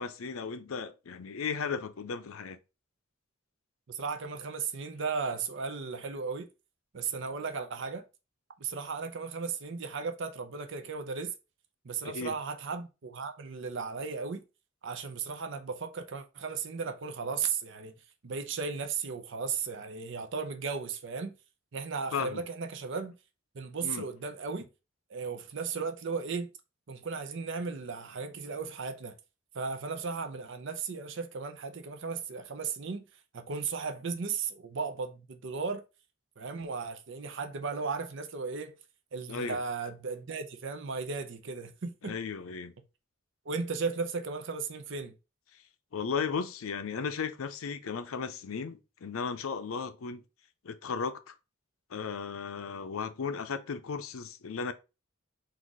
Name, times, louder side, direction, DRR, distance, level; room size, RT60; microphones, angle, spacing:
voice 1, 0.0-2.6 12.0-12.4 22.1-22.4 23.8-24.1 39.3-39.6 42.0-42.7 45.9-50.2 50.6-51.4 51.9-54.7, left 5 dB, 85° left, 0.5 m, -35 dB
voice 2, 3.9-6.5 6.9-8.0 8.6-11.3 11.8-14.4 14.8-17.9 18.2-21.3 21.7-23.1 23.5-24.7 25.1-26.5 26.9-29.1 29.5-33.1 33.3-35.8 36.4-38.7 39.1-42.1 43.5-45.1, right 5 dB, 60° right, 0.6 m, -35 dB
4.0 x 2.4 x 4.6 m
head